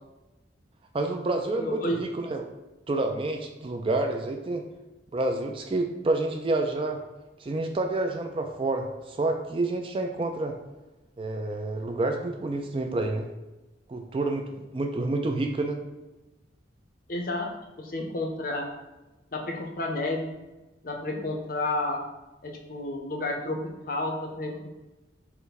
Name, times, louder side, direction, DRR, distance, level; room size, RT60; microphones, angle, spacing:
voice 1, 0.9-2.4 2.9-4.6 5.1-7.0 7.4-10.6 11.2-13.3 13.9-15.8, right 2 dB, 25° right, 4 dB, 0.3 m, -28 dB
voice 2, 1.6-2.0 17.1-17.5 17.8-18.7 19.3-20.3 20.8-22.0 22.4-23.6 23.8-24.8, left 2 dB, 45° left, 2 dB, 0.6 m, -31 dB
5.6 x 2.1 x 4.0 m, 1.1 s
head